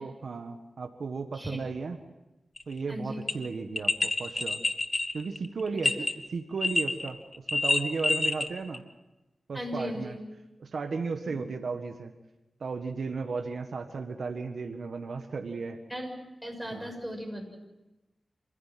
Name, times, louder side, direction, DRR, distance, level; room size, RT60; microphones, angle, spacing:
voice 1, 0.0-2.0 2.7-4.6 5.1-7.2 7.5-8.8 9.5-10.1 10.6-12.1 12.6-15.8 16.7-16.9, right 4 dB, 70° right, 6 dB, 1.5 m, -35 dB
sound 1, 2.6-2.7 3.3-3.4 3.8-6.1 6.6-7.1 7.3-8.5 8.7-8.8, left 2 dB, 30° left, 1.5 m, -27 dB
voice 2, 2.9-3.3 9.5-10.2 11.2-11.3 15.9-16.1 16.4-17.6, equal, ahead, 1 dB, 6.7 m, -37 dB
27.0 x 15.5 x 7.7 m, 1.0 s
wide cardioid pair, 80°, 0 cm